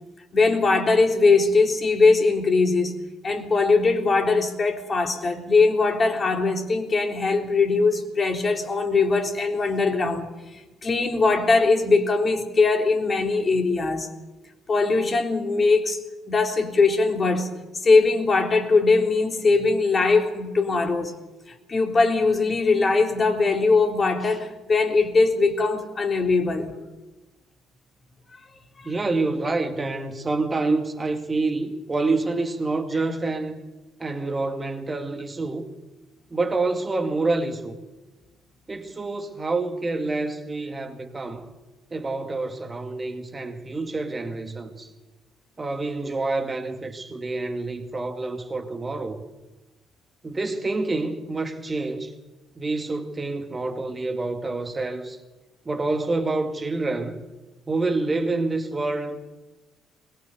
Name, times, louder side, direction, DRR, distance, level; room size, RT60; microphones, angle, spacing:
voice 1, 0.3-3.0 3.2-10.3 10.8-14.1 14.7-17.5 17.8-21.1 21.7-26.7, left 3 dB, 30° left, 3.7 m, -21 dB
voice 2, 28.8-33.6 34.0-35.7 36.3-37.8 38.7-41.5 41.9-44.9 45.6-49.2 50.2-52.1 52.6-55.2 55.7-57.2 57.7-59.2, right 3 dB, 25° right, 2.4 m, -27 dB
22.0 x 22.0 x 6.9 m
figure-of-eight pair, 50°, 0 cm